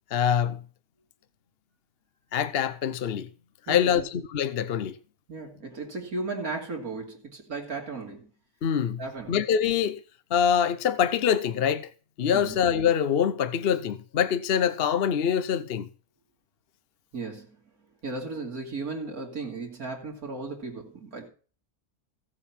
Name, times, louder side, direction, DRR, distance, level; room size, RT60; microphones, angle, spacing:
voice 1, 0.1-0.6 2.3-3.3 3.7-4.0 4.3-4.9 8.6-9.0 9.3-10.0 10.3-11.9 12.2-15.9, left 8 dB, 50° left, 0.8 m, -24 dB
voice 2, 3.7-4.0 5.3-8.3 9.0-9.4 12.3-12.6 17.1-17.5 18.0-21.3, right 3 dB, 80° right, 3.1 m, -35 dB
16.0 x 7.9 x 5.8 m
omnidirectional pair, 1.5 m